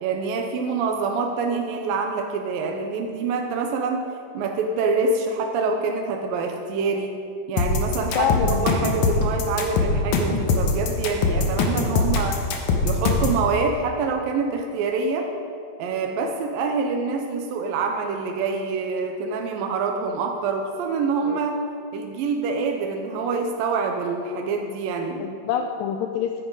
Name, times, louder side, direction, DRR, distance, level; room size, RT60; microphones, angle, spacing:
voice 1, 0.0-4.0 4.3-7.1 7.5-12.4 12.8-15.3 15.8-21.6 21.9-25.3, right 4 dB, 75° right, 3 dB, 2.4 m, -26 dB
sound 1, 7.6-13.4, left 4 dB, 65° left, 2.3 m, -22 dB
voice 2, 8.2-8.8 21.2-21.4 25.2-26.4, left 8 dB, 85° left, 5 dB, 2.0 m, -26 dB
15.0 x 9.9 x 4.8 m, 2.4 s
omnidirectional pair, 4.4 m